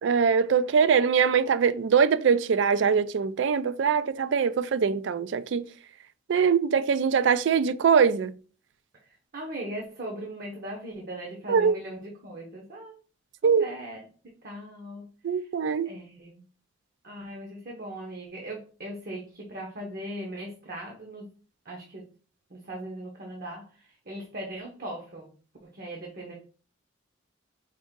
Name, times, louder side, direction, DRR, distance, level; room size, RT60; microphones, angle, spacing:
voice 1, 0.0-5.6 6.3-8.3 11.5-11.7 13.4-13.7 15.2-15.9, right 6 dB, 65° right, 0.4 m, -22 dB
voice 2, 9.3-12.9 13.4-14.0 14.4-15.5 15.8-16.4 17.0-21.3 21.6-22.0 22.5-25.3 25.6-26.3, right 1 dB, 50° right, 0.9 m, -39 dB
5.0 x 2.6 x 3.7 m
head